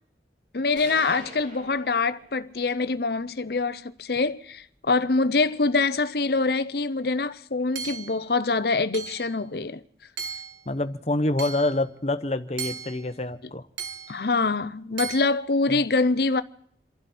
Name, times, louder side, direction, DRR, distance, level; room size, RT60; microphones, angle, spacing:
voice 1, 0.5-9.8 14.1-16.4, left 3 dB, 60° left, 0.7 m, -25 dB
sound 1, 0.8-2.7, right 2 dB, 45° right, 4.0 m, -44 dB
Hammer / Chink clink, 7.8-8.2 8.9-9.3 10.2-10.6 11.4-11.8 12.6-13.1 13.8-14.2 15.0-15.2, right 6 dB, 85° right, 1.7 m, -35 dB
voice 2, 10.7-13.7 15.7-15.8, left 2 dB, 35° left, 1.0 m, -27 dB
29.0 x 11.5 x 4.4 m
head